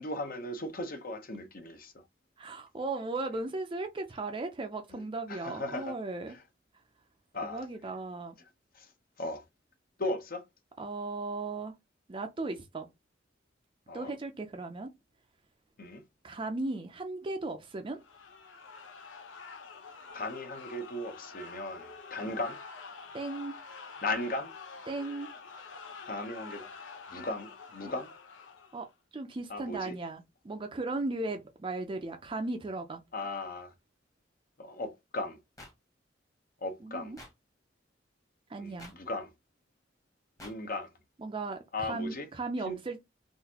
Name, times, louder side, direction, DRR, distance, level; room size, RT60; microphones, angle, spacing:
voice 1, 0.0-1.9 4.9-5.0 5.3-6.0 7.3-7.7 8.7-8.9 9.2-9.4 10.0-10.4 13.9-14.1 15.8-16.0 20.1-22.6 24.0-24.5 26.0-26.7 27.1-28.1 29.5-29.9 33.1-33.7 34.6-35.4 36.6-37.1 38.6-39.3 40.4-40.9 41.7-42.3 42.7-42.8, left 2 dB, 50° left, 0.8 m, -37 dB
voice 2, 2.4-6.3 7.4-8.4 10.8-11.7 12.1-12.9 13.9-14.9 16.2-18.0 22.2-22.4 23.1-23.5 24.9-25.3 28.7-28.9 29.1-33.0 36.8-37.2 38.5-38.9 41.2-43.0, right 2 dB, 25° right, 0.4 m, -36 dB
sound 1, 18.0-28.9, left 4 dB, 80° left, 0.7 m, -47 dB
sound 2, 35.6-35.7 37.2-37.3 38.8-38.9 40.4-40.5, left 1 dB, 20° left, 1.1 m, -47 dB
3.8 x 2.5 x 2.8 m
head